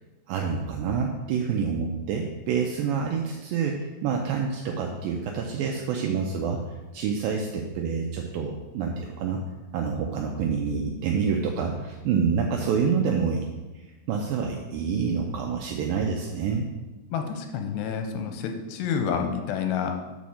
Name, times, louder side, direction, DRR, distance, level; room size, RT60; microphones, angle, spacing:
voice 1, 0.3-6.6 6.9-9.4 9.7-13.4 13.8-16.7, right 6 dB, 85° right, 1 dB, 2.0 m, -27 dB
voice 2, 17.1-19.9, left 7 dB, 90° left, 5 dB, 2.8 m, -29 dB
7.0 x 5.1 x 6.3 m, 1.1 s
omnidirectional pair, 4.8 m